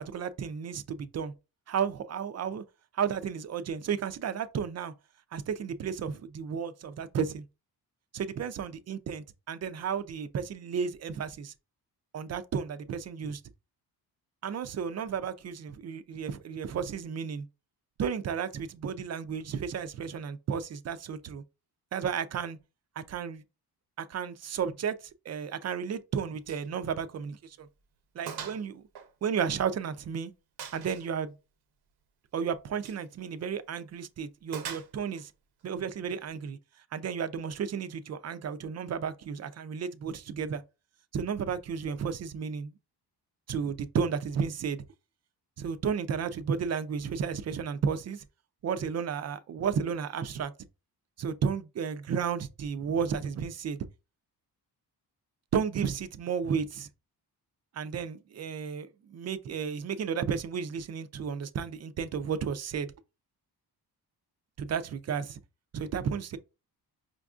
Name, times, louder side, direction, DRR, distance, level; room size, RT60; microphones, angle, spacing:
voice 1, 0.0-1.3 1.7-2.6 2.9-4.9 5.3-7.4 8.1-11.5 12.1-13.4 14.4-17.4 18.0-21.4 21.9-22.6 23.0-23.4 24.0-27.7 28.2-28.8 29.2-30.3 30.7-31.3 32.3-35.3 35.6-36.6 36.9-40.6 41.1-42.7 43.5-44.8 45.6-48.2 48.6-50.5 51.2-53.8 55.5-56.9 57.7-62.9 64.6-65.4 65.7-66.4, right 7 dB, 45° right, 0.4 m, -33 dB
Gunshot gunfire, 26.5-26.7 27.0-27.1 27.6-27.7 28.3-28.6 28.9-29.9 30.6-31.1 32.7-33.0 34.5-35.3, right 8 dB, 80° right, 0.8 m, -41 dB
5.1 x 2.5 x 2.3 m
cardioid pair, 90°, 39 cm